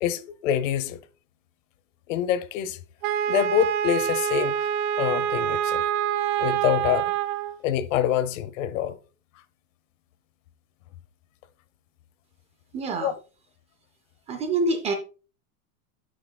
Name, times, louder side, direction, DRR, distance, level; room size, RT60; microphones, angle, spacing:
voice 1, 0.0-1.0 2.1-2.8 3.3-4.7 5.0-5.8 6.4-7.1 7.6-9.0 13.0-13.1, left 10 dB, 60° left, 0.8 m, -25 dB
Wind instrument woodwind instrument, 3.0-7.6, right 10 dB, 50° right, 0.7 m, -26 dB
voice 2, 12.7-13.1 14.3-14.9, right 3 dB, 15° right, 0.4 m, -26 dB
11.0 x 6.1 x 2.2 m
supercardioid pair, 155°, 42 cm